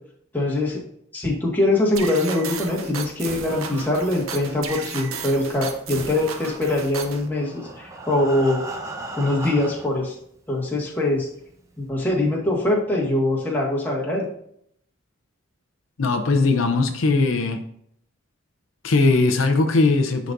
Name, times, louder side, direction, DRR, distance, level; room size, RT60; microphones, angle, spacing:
voice 1, 0.3-0.8 1.1-8.6 9.2-10.1 10.5-11.3 11.8-14.2, left 2 dB, 10° left, -4 dB, 1.6 m, -23 dB
sound 1, 1.9-7.3, right 5 dB, 80° right, 0.8 m, -34 dB
Breathing, 7.1-10.1 10.8-10.9 11.3-11.4 11.8-11.9, right 2 dB, 15° right, 0.7 m, -35 dB
voice 2, 16.0-17.6 18.8-20.3, left 3 dB, 75° left, 6 dB, 0.6 m, -19 dB
11.0 x 4.0 x 2.6 m, 0.69 s
head